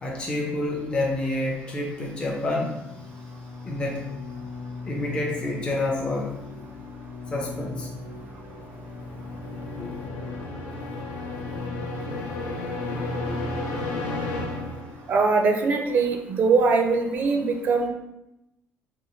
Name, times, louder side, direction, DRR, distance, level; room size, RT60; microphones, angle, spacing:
voice 1, 0.0-2.7 3.6-4.1 4.9-6.6 7.3-7.9 9.8-9.9 11.4-11.5, left 2 dB, 20° left, -2 dB, 0.5 m, -28 dB
sound 1, 2.6-15.3, left 2 dB, 80° left, 0.7 m, -34 dB
voice 2, 15.1-17.9, right 4 dB, 40° right, 3 dB, 0.4 m, -22 dB
4.1 x 2.2 x 3.0 m, 0.90 s
cardioid pair, 145°, 5 cm